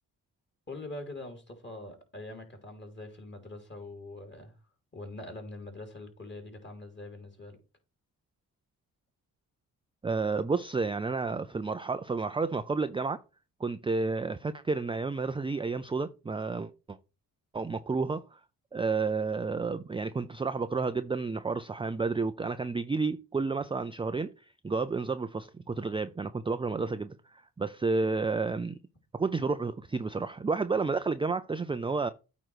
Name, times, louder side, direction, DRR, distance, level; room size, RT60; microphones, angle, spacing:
voice 1, 0.7-4.6 4.9-7.6, left 2 dB, 30° left, 3.2 m, -43 dB
voice 2, 10.0-13.2 13.6-17.0 17.5-18.4 18.7-24.3 24.6-28.8 29.1-32.1, right 4 dB, 15° right, 0.4 m, -31 dB
8.8 x 3.1 x 6.2 m
cardioid pair, 60°, 38 cm